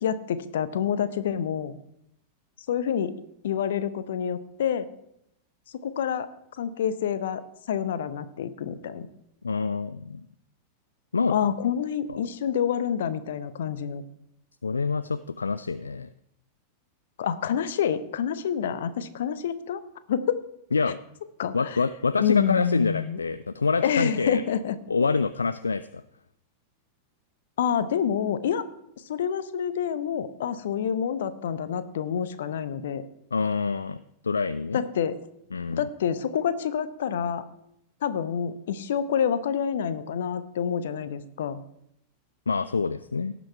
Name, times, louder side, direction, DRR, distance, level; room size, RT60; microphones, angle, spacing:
voice 1, 0.0-1.7 2.7-3.2 3.4-4.9 5.8-6.3 6.6-7.4 7.7-9.1 11.3-14.0 17.2-19.8 20.1-20.4 21.4-21.8 22.2-23.2 23.8-24.7 27.6-28.6 29.1-33.0 34.7-35.2 35.8-37.4 38.0-41.6, left 8 dB, 60° left, 14 dB, 0.8 m, -27 dB
voice 2, 9.4-10.3 11.1-11.3 14.6-16.1 20.7-21.0 21.5-24.4 24.9-26.0 33.3-34.0 34.2-34.8 35.5-35.8 42.5-43.4, left 4 dB, 75° left, 15 dB, 0.3 m, -26 dB
17.5 x 6.1 x 4.5 m, 0.77 s
figure-of-eight pair, 90°, 0 cm